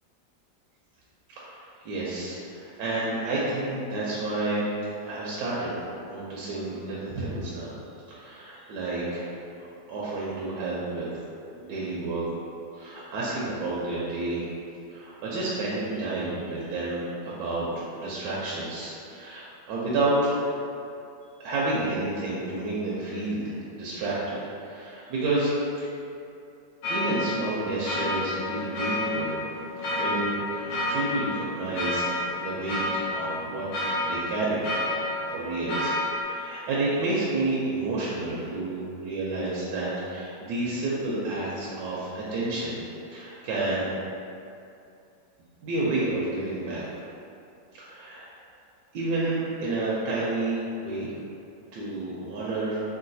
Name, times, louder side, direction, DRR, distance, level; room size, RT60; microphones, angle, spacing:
voice 1, 1.3-4.7 5.0-5.7 6.1-7.7 8.1-9.3 9.9-11.1 11.6-12.3 12.7-14.4 14.9-20.4 21.4-25.5 25.8-25.9 26.9-29.4 30.0-34.8 35.3-42.8 43.1-44.0 45.6-46.8 47.8-48.3 48.9-51.1 51.7-52.8, right 2 dB, 75° right, -7 dB, 1.1 m, -30 dB
sound 1, 26.8-36.2, left 1 dB, 90° left, 1.4 m, -30 dB
3.8 x 2.3 x 2.6 m, 2.6 s
omnidirectional pair, 1.9 m